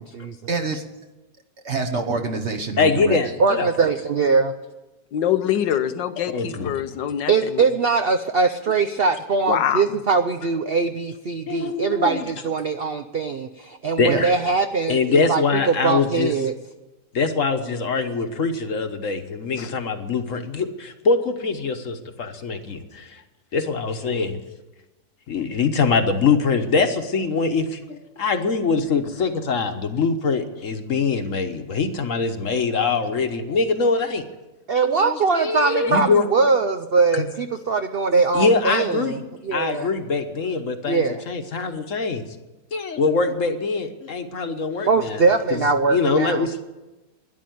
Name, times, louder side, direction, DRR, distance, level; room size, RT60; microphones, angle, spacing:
voice 1, 0.5-0.9 1.6-3.3 14.1-14.2, right 4 dB, 45° right, 4 dB, 1.3 m, -26 dB
voice 2, 2.8-3.9 6.2-6.7 11.5-12.2 14.0-14.3 14.9-16.3 17.1-23.2 23.5-24.4 25.3-34.2 34.9-36.3 37.1-37.3 38.3-39.2 39.5-42.2 42.7-45.2 45.5-45.6 45.9-46.6, left 4 dB, 50° left, 7 dB, 1.3 m, -23 dB
voice 3, 3.4-4.5 7.3-16.5 34.7-39.2 39.4-40.2 40.9-41.2 44.9-46.5, right 4 dB, 65° right, 8 dB, 0.6 m, -21 dB
voice 4, 5.1-7.6 9.5-9.9 19.6-19.7, left 10 dB, 85° left, 10 dB, 1.5 m, -24 dB
12.5 x 10.5 x 9.3 m, 1.1 s
omnidirectional pair, 1.9 m